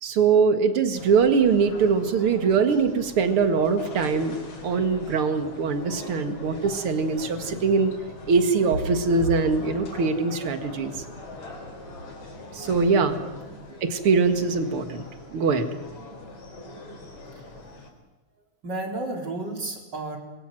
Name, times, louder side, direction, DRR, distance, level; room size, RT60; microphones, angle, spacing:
voice 1, 0.0-4.4 4.6-7.9 8.3-11.0 12.5-13.2 13.8-15.0 15.3-15.7, right 5 dB, 45° right, 8 dB, 2.4 m, -22 dB
sound 1, 1.0-17.9, left 2 dB, 60° left, 5.2 m, -41 dB
voice 2, 12.9-13.6 17.4-17.5 18.6-20.2, right 2 dB, 30° right, 3 dB, 4.3 m, -33 dB
27.0 x 21.5 x 7.7 m, 1.2 s
omnidirectional pair, 3.7 m